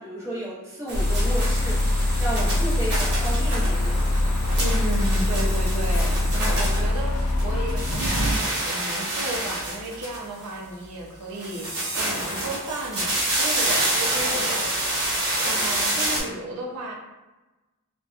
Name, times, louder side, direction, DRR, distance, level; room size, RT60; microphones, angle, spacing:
voice 1, 0.0-4.0, right 1 dB, 15° right, -8 dB, 0.7 m, -33 dB
sound 1, 0.9-8.3, left 1 dB, 80° left, 0.4 m, -23 dB
sound 2, 0.9-7.4 7.7-10.5 11.4-16.2, right 1 dB, 50° right, 0.9 m, -28 dB
voice 2, 4.6-14.7 15.4-16.9, right 2 dB, 75° right, -2 dB, 0.5 m, -34 dB
2.7 x 2.1 x 2.3 m, 1.1 s
head